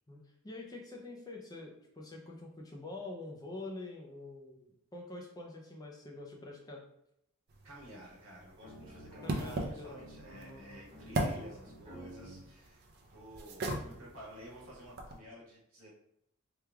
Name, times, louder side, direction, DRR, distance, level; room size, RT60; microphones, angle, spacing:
voice 1, 0.1-6.8 9.2-10.0, left 2 dB, 15° left, 0 dB, 0.4 m, -46 dB
sound 1, 7.5-15.2, right 1 dB, 45° right, 0.5 m, -40 dB
voice 2, 7.6-15.9, equal, 65° right, -4 dB, 1.2 m, -52 dB
sound 2, 8.6-12.4, equal, 30° right, 1.2 m, -51 dB
3.2 x 2.3 x 3.4 m, 0.77 s
head